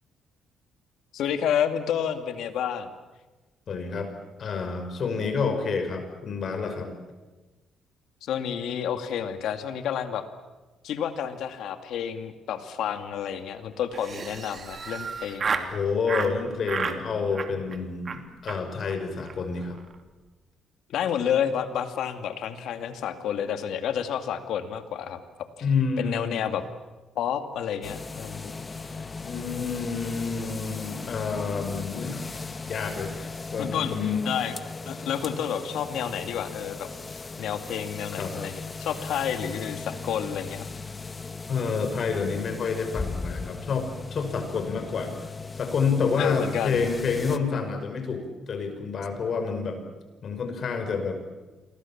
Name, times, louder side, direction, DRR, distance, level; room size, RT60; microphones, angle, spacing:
voice 1, 1.1-2.9 8.2-10.2 10.8-15.8 20.9-25.2 25.6-25.7 26.0-26.6 27.2-28.7 28.9-29.1 33.6-34.5 34.9-36.9 37.4-40.7 46.2-47.0, left 8 dB, 80° left, 8 dB, 2.4 m, -30 dB
voice 2, 3.7-4.1 4.4-6.9 15.7-19.8 25.6-26.4 29.2-32.2 32.6-34.2 38.2-38.3 41.5-45.1 45.5-49.8 50.2-51.2, left 5 dB, 55° left, 7 dB, 5.6 m, -28 dB
Laughter, 13.9-15.7 16.1-16.3 16.6-17.0 17.3-17.8 18.1-18.2 18.5-18.6 18.9-19.0 19.2-19.4 19.6-19.9, right 5 dB, 45° right, 2.7 m, -32 dB
sound 1, 27.8-47.4, left 4 dB, 30° left, 1.6 m, -38 dB
28.5 x 23.5 x 7.4 m, 1.2 s
cardioid pair, 90°, 0 cm